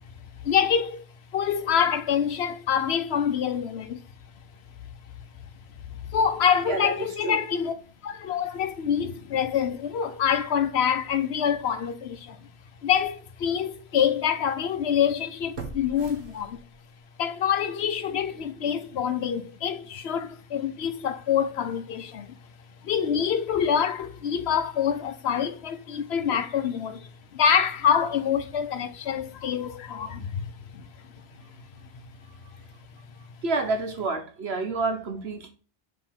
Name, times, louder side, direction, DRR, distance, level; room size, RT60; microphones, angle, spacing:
voice 1, 0.4-1.0 1.3-4.0 6.1-7.7 8.0-12.5 12.8-16.6 17.2-22.3 22.8-30.9 31.4-31.5, left 8 dB, 90° left, 1.0 m, -26 dB
voice 2, 6.7-7.4 30.2-30.3 32.3-32.4 33.4-35.5, right 3 dB, 80° right, 1.3 m, -29 dB
sound 1, 12.3-12.4 13.0-13.1 15.5-17.0 17.4-17.5, right 3 dB, 60° right, 1.5 m, -41 dB
6.6 x 3.0 x 5.7 m
omnidirectional pair, 1.0 m